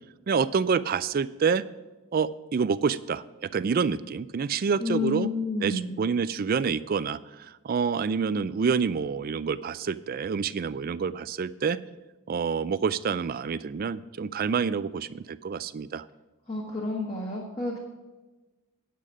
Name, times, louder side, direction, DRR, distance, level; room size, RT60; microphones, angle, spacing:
voice 1, 0.3-1.6 2.1-3.2 3.5-5.3 5.6-11.8 12.3-16.1, right 5 dB, 40° right, 16 dB, 0.3 m, -27 dB
voice 2, 4.8-6.0 16.5-17.8, left 3 dB, 25° left, -2 dB, 1.3 m, -30 dB
9.1 x 8.5 x 4.9 m, 1.2 s
head